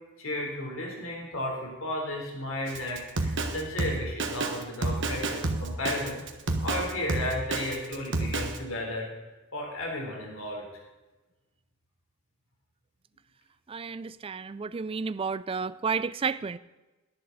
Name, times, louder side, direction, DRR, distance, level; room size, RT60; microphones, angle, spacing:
voice 1, 0.2-6.2 6.6-9.1 9.5-10.7, left 1 dB, 75° left, -1 dB, 3.7 m, -34 dB
Drum kit, 2.7-8.6, right 2 dB, 60° right, 1.4 m, -30 dB
voice 2, 13.7-16.6, right 5 dB, 25° right, 16 dB, 0.3 m, -31 dB
18.0 x 11.0 x 4.0 m, 1.1 s
head